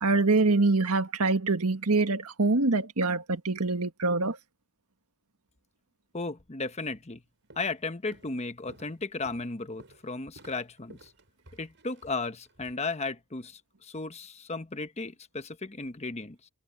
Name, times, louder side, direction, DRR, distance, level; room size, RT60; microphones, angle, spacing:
voice 1, 0.0-4.4, right 3 dB, 80° right, 1.7 m, -25 dB
voice 2, 6.1-7.2 7.6-11.1 11.6-16.5, left 3 dB, 30° left, 1.1 m, -35 dB
Walk footsteps, 6.9-7.2 7.5-7.8 8.1-12.7, right 2 dB, 55° right, 7.8 m, -54 dB
head